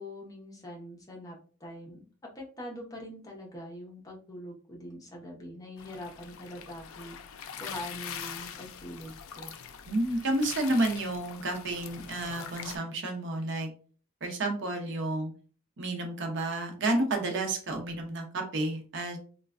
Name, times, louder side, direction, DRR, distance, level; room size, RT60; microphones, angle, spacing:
voice 1, 0.0-2.0 2.3-9.5, left 1 dB, 15° left, -2 dB, 0.7 m, -43 dB
sound 1, 5.8-12.8, left 7 dB, 75° left, 0.4 m, -43 dB
voice 2, 9.9-13.7 14.2-15.3 15.8-19.2, right 2 dB, 60° right, 4 dB, 0.6 m, -30 dB
3.1 x 2.2 x 2.4 m, 0.41 s
head